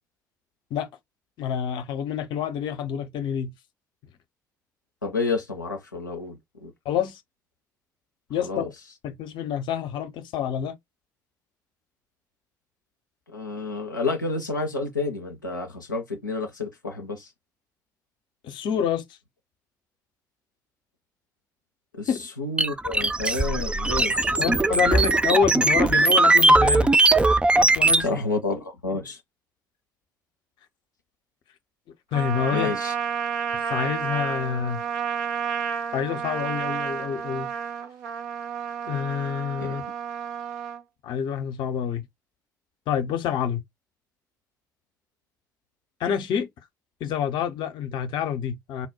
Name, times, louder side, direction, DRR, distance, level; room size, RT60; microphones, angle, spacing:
voice 1, 1.4-3.5 6.8-7.2 8.3-8.7 9.0-10.8 18.4-19.0 22.1-22.3 24.4-26.9 27.6-28.2 32.1-32.7 33.7-34.8 35.9-37.5 38.9-39.8 41.0-42.1 42.9-43.6 46.0-46.5 47.0-48.9, left 8 dB, 50° left, 0.7 m, -27 dB
voice 2, 5.0-6.7 8.4-8.7 13.3-17.3 21.9-22.1 22.4-24.6 24.9-25.0 25.3-25.4 28.0-29.2 32.5-32.9 39.6-39.7, left 3 dB, 85° left, 0.5 m, -30 dB
sound 1, 22.6-28.1, right 2 dB, 10° right, 0.4 m, -19 dB
Trumpet, 32.1-40.8, right 7 dB, 65° right, 0.7 m, -31 dB
4.0 x 2.2 x 4.3 m
figure-of-eight pair, 55°, 10 cm